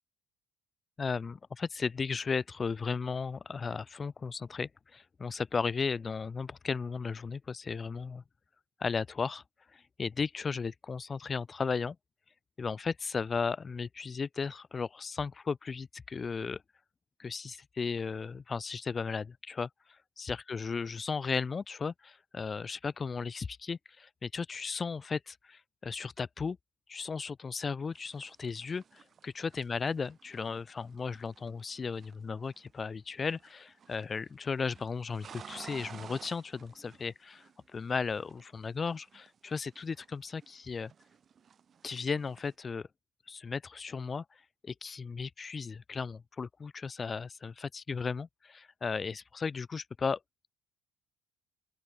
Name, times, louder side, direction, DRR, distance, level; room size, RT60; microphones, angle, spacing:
voice 1, 1.0-8.2 8.8-9.4 9.7-12.0 12.6-16.6 17.2-26.6 26.9-40.9 41.8-42.9 43.3-44.2 44.6-50.2, left 5 dB, 30° left, 0.3 m, -35 dB
sound 1, 27.9-32.9 33.1-34.1 34.4-37.9 38.2-40.6 40.9-42.5, right 7 dB, 40° right, 2.4 m, -53 dB
open air
cardioid pair, 105°, 0 cm